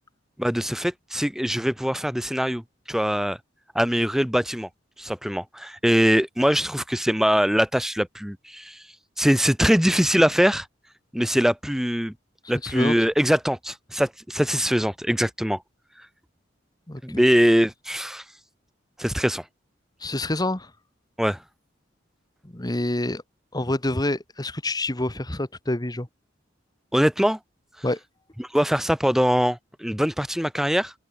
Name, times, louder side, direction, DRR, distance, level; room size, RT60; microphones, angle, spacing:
voice 1, 0.4-2.6 2.9-3.4 3.7-4.7 5.0-8.8 9.2-10.7 11.1-12.1 12.5-15.6 17.0-18.2 19.0-19.4 21.2-21.4 26.9-27.4 28.4-30.9, equal, ahead, 1.2 m, -22 dB
voice 2, 12.6-13.1 16.9-17.2 20.0-20.7 22.4-23.2 23.5-26.1 27.8-28.0, left 1 dB, 20° left, 1.7 m, -27 dB
open air
head